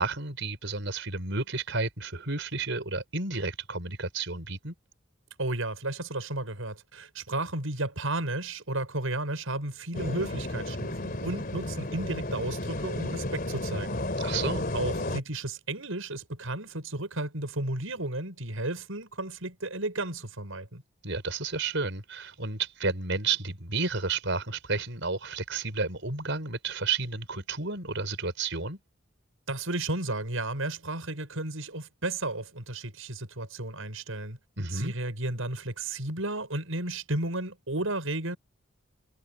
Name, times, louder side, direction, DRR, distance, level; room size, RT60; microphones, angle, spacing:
voice 1, 0.0-4.7 14.2-14.6 21.0-28.8 34.6-34.9, right 4 dB, 65° right, 6.2 m, -31 dB
voice 2, 5.4-14.0 14.7-20.8 29.5-34.4 34.7-38.4, right 2 dB, 85° right, 6.4 m, -33 dB
sound 1, 9.9-15.2, left 1 dB, 45° left, 3.1 m, -33 dB
head